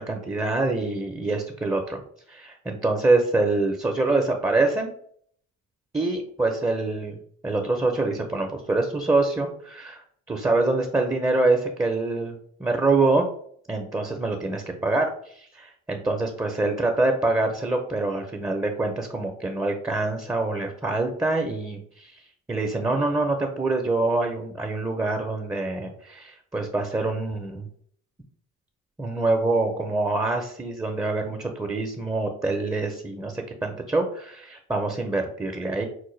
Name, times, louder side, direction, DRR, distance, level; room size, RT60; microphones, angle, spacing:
voice 1, 0.0-2.0 2.3-4.9 5.9-10.0 10.3-13.3 13.7-22.2 22.5-27.7 29.0-35.8, right 2 dB, 10° right, 2 dB, 0.4 m, -25 dB
4.5 x 2.1 x 3.1 m, 0.62 s
cardioid pair, 90°, 30 cm